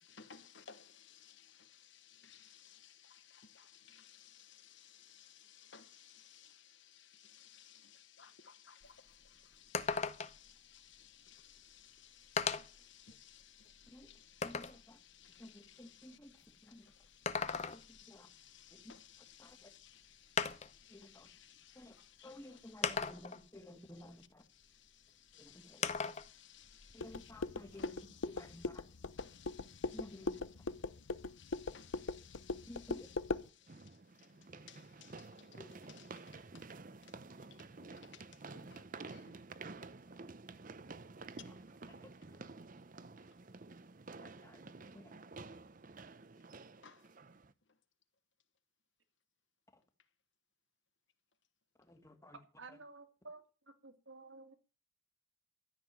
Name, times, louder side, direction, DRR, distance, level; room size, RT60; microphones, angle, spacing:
voice 1, 0.0-24.1 24.5-36.7 37.0-37.2 37.5-37.7 38.0-39.4 41.4-41.8 46.8-47.1, left 8 dB, 65° left, 1.3 m, -60 dB
sound 1, 8.8-8.9 9.2-9.3 9.7-10.5 11.6-11.7 12.4-12.8 13.4-14.8 17.0-18.0 19.5-19.6 20.4-20.8 21.8-21.9 22.8-23.5 25.8-26.3 26.7-27.8, left 5 dB, 35° left, 0.8 m, -37 dB
voice 2, 14.4-15.0 15.4-16.4 16.6-16.9 17.7-18.3 18.7-18.9 19.4-19.7 20.9-21.3 21.8-22.0 22.2-24.4 25.4-25.9 26.9-28.0 28.2-28.8 29.9-30.4 32.7-33.1 35.6-35.7 37.8-37.9 42.0-42.4 44.2-44.6 44.9-45.1 49.7-49.8 51.8-52.4, left 1 dB, 15° left, 1.9 m, -54 dB
sound 2, 27.0-33.5, left 3 dB, 80° left, 0.7 m, -40 dB
sound 3, 31.7-31.8 33.7-47.5, right 3 dB, 40° right, 0.7 m, -51 dB
voice 3, 52.3-54.5, right 3 dB, 70° right, 2.3 m, -53 dB
13.5 x 6.8 x 9.3 m
head